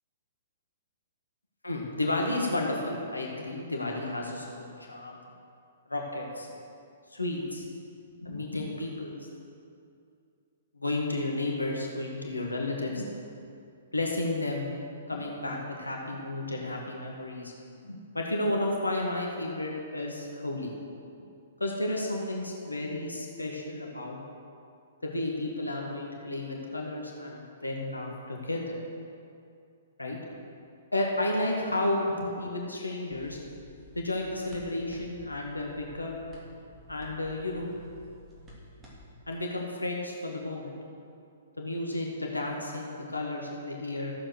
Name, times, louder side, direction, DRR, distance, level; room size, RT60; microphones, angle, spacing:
voice 1, 1.6-5.2 5.9-6.5 7.1-7.7 8.2-9.2 10.7-13.1 13.9-14.7 15.1-17.5 17.8-20.7 21.6-24.2 25.0-28.8 30.0-30.2 30.9-33.4 34.0-36.1 36.9-37.7 39.3-40.7 41.6-44.1, left 2 dB, 85° left, 0 dB, 1.8 m, -32 dB
sound 1, 33.1-39.1, left 1 dB, 20° right, 2.9 m, -51 dB
14.0 x 7.7 x 6.4 m, 2.5 s
figure-of-eight pair, 115°, 0 cm